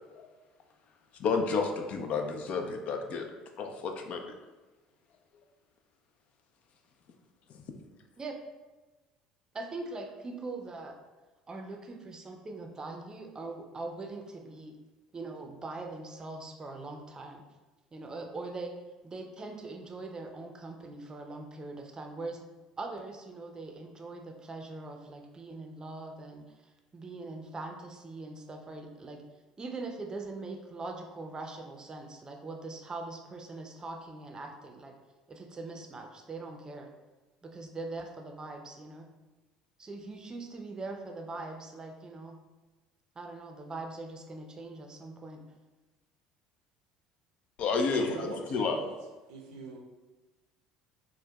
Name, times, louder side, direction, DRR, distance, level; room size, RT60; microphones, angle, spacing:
voice 1, 1.2-3.2 3.6-4.4 47.6-48.1 48.5-48.8, left 4 dB, 50° left, 5 dB, 0.4 m, -30 dB
voice 2, 9.5-10.9 11.5-14.8 15.1-17.4 17.9-18.7 19.0-22.4 22.8-29.2 29.6-34.9 35.3-36.9 37.4-39.1 39.8-42.4 43.2-45.4, right 3 dB, 25° right, 3 dB, 0.5 m, -42 dB
voice 3, 47.9-48.9 49.3-49.8, right 3 dB, 75° right, 1 dB, 0.5 m, -40 dB
4.4 x 2.1 x 2.3 m, 1.2 s
hypercardioid pair, 65°, 3 cm